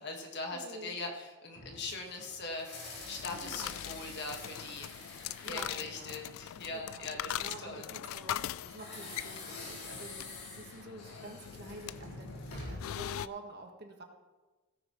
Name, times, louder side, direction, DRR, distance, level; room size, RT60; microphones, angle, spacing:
voice 1, 0.0-7.9, left 3 dB, 50° left, 2 dB, 1.6 m, -41 dB
voice 2, 0.5-1.0 3.3-3.8 5.5-6.2 6.7-14.0, right 2 dB, 50° right, 3 dB, 1.5 m, -49 dB
sound 1, 1.5-6.9 8.6-13.0, left 2 dB, 90° left, 4.0 m, -47 dB
sound 2, 2.9-13.3, left 11 dB, 70° left, 0.3 m, -42 dB
17.0 x 10.0 x 3.1 m, 1.2 s
head